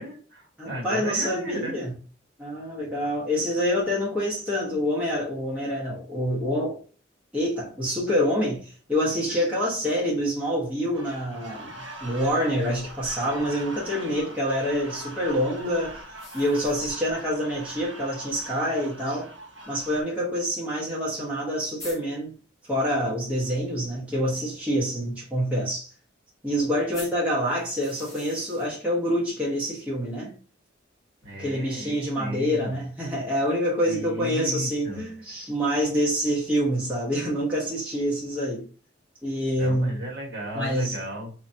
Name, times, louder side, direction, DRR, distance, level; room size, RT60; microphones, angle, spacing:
voice 1, 0.0-1.8 31.2-32.8 33.8-35.1 39.6-41.3, equal, 55° right, 1.6 m, -35 dB
voice 2, 0.6-1.9 2.4-6.8 7.3-11.7 12.0-16.0 16.3-19.3 19.7-22.3 22.7-25.9 26.4-30.4 31.4-38.6 39.2-40.0 40.5-41.0, equal, 5° right, 1.3 m, -26 dB
sound 1, 10.9-20.0, right 1 dB, 75° right, 1.3 m, -41 dB
sound 2, 11.5-13.6 16.1-17.3 17.7-17.8 18.1-18.2 19.1-19.2 21.0-21.1 21.3-21.4 21.8-22.0 26.9-28.7, left 2 dB, 20° left, 1.1 m, -45 dB
4.0 x 3.0 x 2.8 m
head